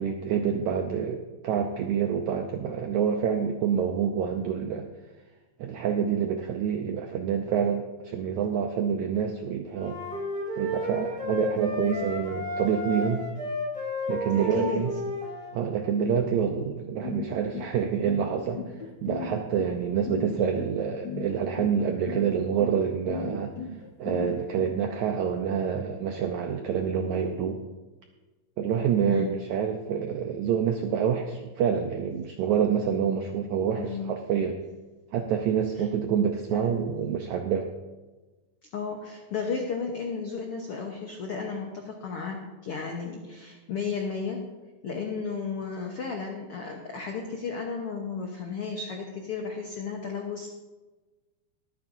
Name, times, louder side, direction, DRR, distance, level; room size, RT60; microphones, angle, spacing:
voice 1, 0.0-4.9 5.6-10.0 10.6-13.3 14.1-14.9 15.5-18.8 19.0-23.5 24.0-27.6 28.6-34.6 35.1-37.7, right 7 dB, 85° right, 4 dB, 1.7 m, -27 dB
sound 1, 9.7-15.5, left 1 dB, 25° right, 4.2 m, -32 dB
voice 2, 14.3-14.8 29.1-29.3 33.7-34.1 35.8-35.9 36.5-36.8 38.7-44.4 44.8-50.5, left 5 dB, 85° left, 1 dB, 1.2 m, -33 dB
sound 2, 17.0-24.7, left 5 dB, 55° left, 1.2 m, -36 dB
22.5 x 9.1 x 2.7 m, 1.2 s
omnidirectional pair, 4.3 m